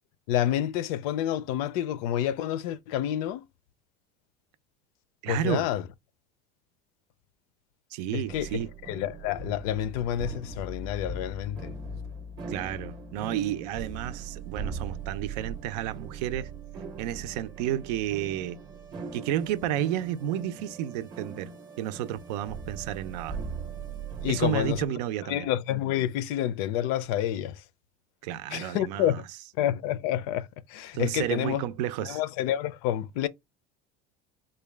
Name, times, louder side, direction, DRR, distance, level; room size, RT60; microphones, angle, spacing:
voice 1, 0.3-3.4 5.3-5.8 8.1-8.6 8.9-11.7 24.2-24.9 25.3-27.6 28.5-29.1 29.6-31.6 32.0-33.3, left 11 dB, 60° left, 0.5 m, -29 dB
voice 2, 5.2-5.7 7.9-8.7 12.5-16.5 17.0-18.6 19.1-21.5 21.8-23.4 24.3-25.5 28.2-29.2 30.9-32.2, right 11 dB, 80° right, 0.5 m, -31 dB
sound 1, 8.3-24.9, right 4 dB, 20° right, 0.7 m, -40 dB
3.9 x 2.2 x 3.3 m
cardioid pair, 180°, 21 cm